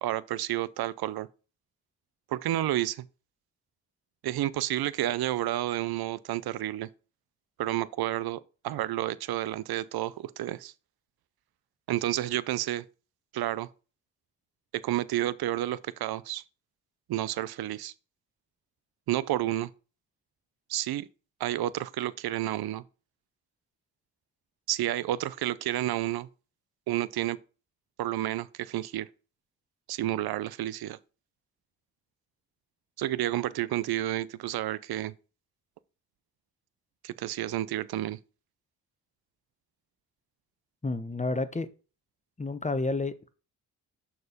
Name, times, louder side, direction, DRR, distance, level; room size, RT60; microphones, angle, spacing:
voice 1, 0.0-1.3 2.3-3.1 4.2-6.9 7.6-10.7 11.9-12.8 13.3-13.7 14.7-16.4 17.1-17.9 19.1-19.7 20.7-21.1 21.4-22.8 24.7-26.3 26.9-27.4 28.0-29.1 29.9-31.0 33.0-35.1 37.0-38.2, right 14 dB, 65° right, 0.6 m, -30 dB
voice 2, 40.8-41.7 42.4-43.3, left 2 dB, 15° left, 1.0 m, -30 dB
6.5 x 4.5 x 5.1 m
supercardioid pair, 45°, 41 cm